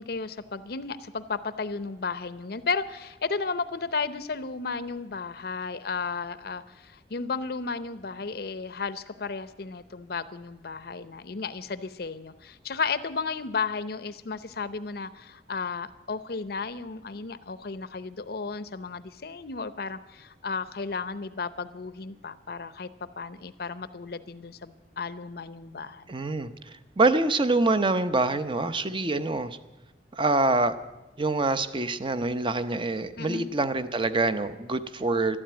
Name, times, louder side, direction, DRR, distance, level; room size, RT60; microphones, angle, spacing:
voice 1, 0.0-22.9 23.2-26.0 33.2-33.5, left 4 dB, 60° left, 14 dB, 0.7 m, -34 dB
voice 2, 26.1-26.5 27.0-29.6 30.1-30.7 31.2-35.4, right 2 dB, 30° right, 11 dB, 0.7 m, -25 dB
12.5 x 12.5 x 8.8 m, 1.1 s
head